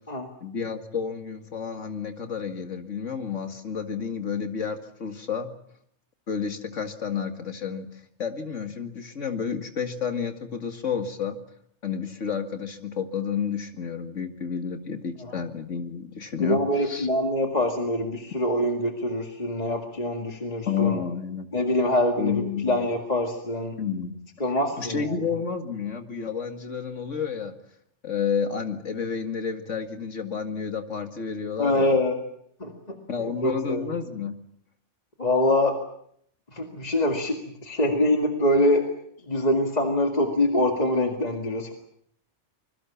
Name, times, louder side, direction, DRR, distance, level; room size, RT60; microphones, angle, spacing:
voice 1, 0.4-5.5 6.3-7.9 8.2-11.4 11.8-17.1 20.7-21.5 22.2-22.8 23.8-24.2 24.8-27.5 28.0-32.0 33.1-34.3, left 6 dB, 80° left, 7 dB, 2.4 m, -30 dB
voice 2, 16.4-21.0 21.5-23.8 24.4-25.2 31.6-32.2 32.6-33.9 35.2-35.8 36.5-38.9 39.3-41.7, left 1 dB, 35° left, 3 dB, 2.2 m, -24 dB
25.5 x 21.5 x 7.2 m, 0.68 s
omnidirectional pair, 1.3 m